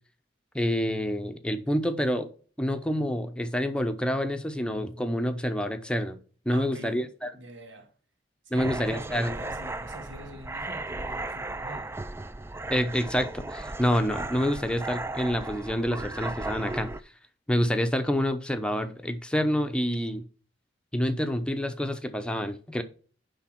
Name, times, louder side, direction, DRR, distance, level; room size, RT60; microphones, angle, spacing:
voice 1, 0.5-2.3 2.6-6.2 6.5-7.3 8.5-9.4 12.7-16.9 17.5-20.2 20.9-22.8, equal, 5° left, 0.7 m, -27 dB
voice 2, 6.5-7.0 7.3-7.9 8.4-11.9, right 1 dB, 90° right, 1.7 m, -44 dB
sound 1, 8.6-17.0, right 2 dB, 15° right, 0.3 m, -36 dB
10.5 x 3.5 x 5.9 m
head